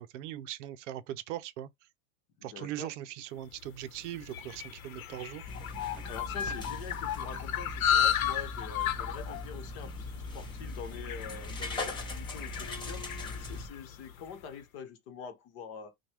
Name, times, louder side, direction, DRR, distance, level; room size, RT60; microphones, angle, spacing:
voice 1, 0.0-1.7 2.4-5.4, right 12 dB, 60° right, 0.6 m, -40 dB
voice 2, 2.4-2.9 5.9-15.9, left 6 dB, 45° left, 1.1 m, -45 dB
sound 1, 3.6-14.2, left 9 dB, 85° left, 0.9 m, -34 dB
sound 2, 5.5-13.7, left 2 dB, 10° left, 0.7 m, -40 dB
5.9 x 2.3 x 3.4 m
supercardioid pair, 155°, 41 cm